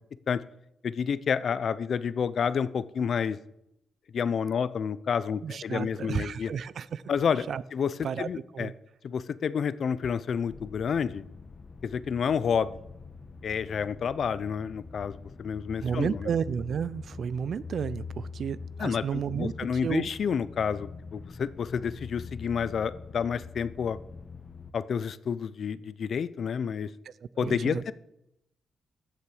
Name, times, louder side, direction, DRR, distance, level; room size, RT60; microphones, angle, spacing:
voice 1, 0.8-3.4 4.1-6.5 7.1-8.7 9.0-11.3 11.8-12.8 13.4-16.3 18.8-24.0 24.7-26.9 27.4-27.9, left 7 dB, 65° left, 17 dB, 0.5 m, -29 dB
voice 2, 5.4-7.0 7.5-7.6 8.0-8.7 15.8-19.5 19.8-20.1 27.1-27.2 27.4-27.8, right 7 dB, 70° right, 18 dB, 0.4 m, -32 dB
sound 1, 10.5-24.7, left 4 dB, 45° left, 1.1 m, -44 dB
14.5 x 6.8 x 4.9 m, 0.82 s
cardioid pair, 60°, 0 cm